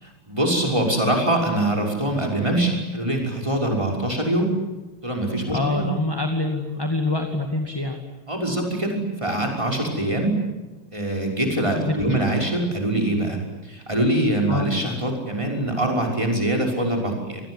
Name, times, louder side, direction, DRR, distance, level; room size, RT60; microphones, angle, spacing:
voice 1, 0.0-4.5 5.0-5.8 8.3-10.4 10.9-17.4, right 1 dB, 15° right, 0 dB, 6.0 m, -23 dB
voice 2, 5.5-8.0 11.7-12.2 14.5-14.7, left 2 dB, 10° left, 4 dB, 2.1 m, -25 dB
27.5 x 20.0 x 9.9 m, 1.1 s
omnidirectional pair, 2.4 m